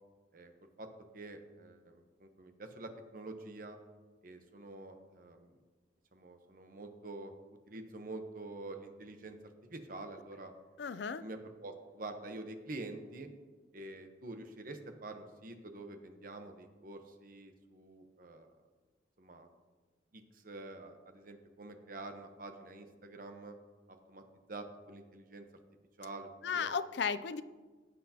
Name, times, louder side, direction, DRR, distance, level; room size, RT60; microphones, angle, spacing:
voice 1, 1.1-3.8 4.2-5.5 6.1-7.3 7.7-9.4 9.6-10.5 11.2-13.3 13.7-18.5 19.2-19.5 20.1-23.6 23.9-24.2 24.5-25.4 26.0-26.7, right 2 dB, 50° right, 6 dB, 1.0 m, -47 dB
voice 2, 10.8-11.2 26.4-27.4, left 6 dB, 70° left, 14 dB, 0.5 m, -34 dB
15.5 x 8.4 x 2.9 m, 1.3 s
head